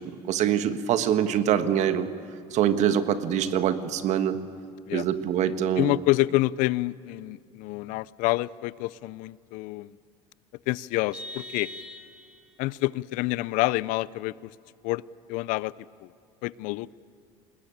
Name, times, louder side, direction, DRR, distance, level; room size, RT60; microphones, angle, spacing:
voice 1, 0.0-2.1 2.5-4.4 4.9-5.9, right 9 dB, 55° right, 11 dB, 1.4 m, -24 dB
voice 2, 5.8-9.9 10.7-11.7 12.6-14.3 14.8-15.0 15.3-15.7 16.4-16.9, left 19 dB, 70° left, 21 dB, 0.5 m, -27 dB
Vehicle horn car horn honking, 11.1-12.5, equal, 5° right, 4.2 m, -41 dB
21.5 x 19.5 x 8.8 m, 2.3 s
supercardioid pair, 110°, 14 cm